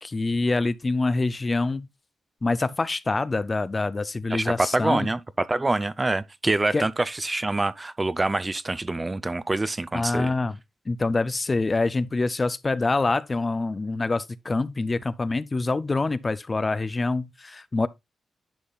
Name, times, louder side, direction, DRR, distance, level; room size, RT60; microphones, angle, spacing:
voice 1, 0.0-1.9 2.4-5.1 6.7-6.9 9.9-10.6 10.9-17.9, left 3 dB, 35° left, 0.5 m, -25 dB
voice 2, 4.3-5.2 5.5-10.3, right 2 dB, 25° right, 0.5 m, -26 dB
10.5 x 5.4 x 2.4 m
cardioid pair, 65°, 0 cm